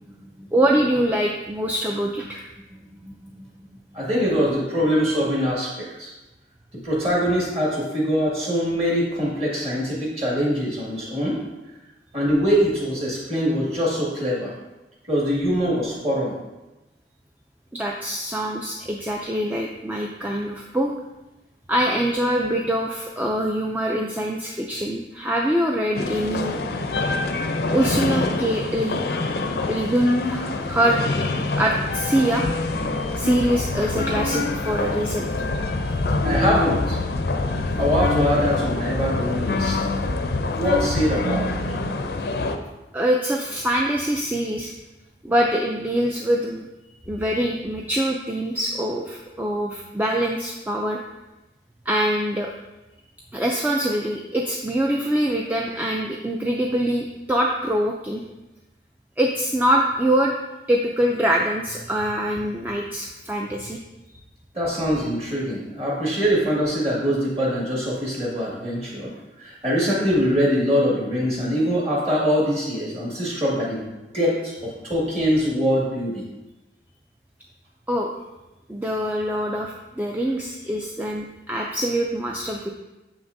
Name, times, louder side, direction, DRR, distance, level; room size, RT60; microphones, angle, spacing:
voice 1, 0.5-2.4 17.7-20.9 21.7-26.6 27.7-29.1 29.7-31.0 31.6-35.3 35.7-36.1 42.9-44.7 45.2-46.7 47.1-51.0 51.9-52.5 53.3-58.2 59.2-60.3 60.7-63.8 77.9-78.1 78.7-82.7, right 1 dB, 10° right, -1 dB, 0.3 m, -24 dB
voice 2, 3.9-6.1 6.8-11.4 12.1-14.5 15.1-16.3 36.2-37.0 37.8-39.9 40.5-41.5 64.5-69.1 69.4-73.8 74.1-76.2, equal, 35° right, -5 dB, 1.9 m, -23 dB
sound 1, 25.9-42.6, left 2 dB, 60° left, 0.5 m, -25 dB
7.2 x 5.9 x 2.6 m, 1.0 s
head